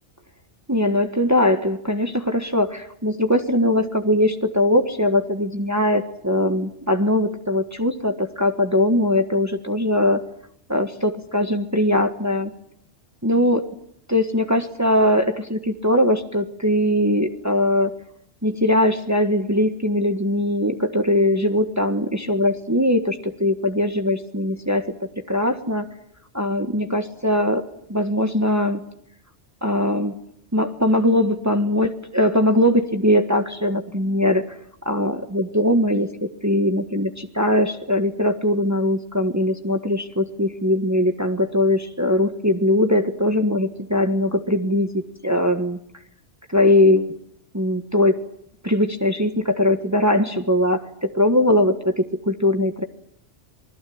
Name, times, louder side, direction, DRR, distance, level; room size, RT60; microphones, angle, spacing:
voice 1, 0.7-10.2 10.7-12.5 13.2-13.6 14.1-17.9 18.4-25.9 26.3-27.6 27.9-28.8 29.6-30.1 30.5-34.4 34.8-45.8 46.5-47.2 47.5-48.2 48.6-52.8, left 1 dB, 15° right, 6 dB, 1.5 m, -21 dB
27.0 x 21.0 x 8.7 m, 0.71 s
omnidirectional pair, 1.1 m